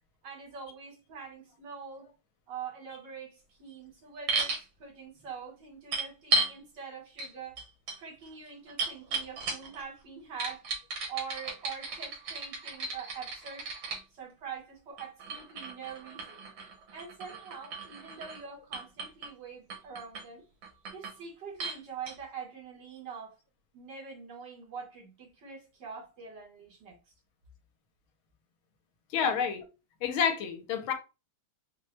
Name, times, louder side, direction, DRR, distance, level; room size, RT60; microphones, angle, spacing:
voice 1, 0.2-2.1 2.5-7.6 8.0-10.7 11.1-13.7 14.1-16.5 16.9-20.5 20.9-23.4 23.7-27.0 29.1-29.3, right 6 dB, 60° right, 1.8 m, -44 dB
sound 1, 4.3-4.6 5.9-6.6 7.2-7.3 7.6-9.8 10.4-14.0 15.0-18.4 18.7-19.3 19.7-20.2 20.6-21.2 21.6-21.8 22.1-22.2, right 3 dB, 80° right, 1.9 m, -34 dB
voice 2, 29.1-29.6 30.0-30.9, left 7 dB, 80° left, 1.6 m, -28 dB
4.5 x 2.2 x 3.1 m
omnidirectional pair, 2.2 m